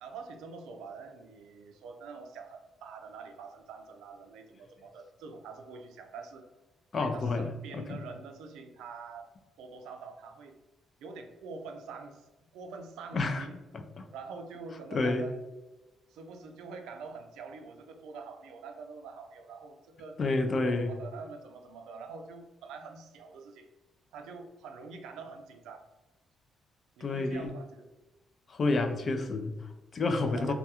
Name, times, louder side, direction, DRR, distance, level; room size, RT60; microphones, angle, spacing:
voice 1, 0.0-6.5 6.9-9.3 9.6-10.6 11.0-12.3 12.5-13.6 14.1-15.3 16.1-20.2 20.5-23.7 24.1-25.9 27.0-27.9 30.3-30.5, right 4 dB, 90° right, 5 dB, 0.3 m, -45 dB
voice 2, 6.9-7.8 13.1-13.5 13.7-14.1 14.9-15.3 20.2-20.9 27.0-27.5 28.5-30.5, left 3 dB, 45° left, 6 dB, 0.3 m, -30 dB
2.3 x 2.2 x 2.8 m, 1.1 s
cardioid pair, 90°, 0 cm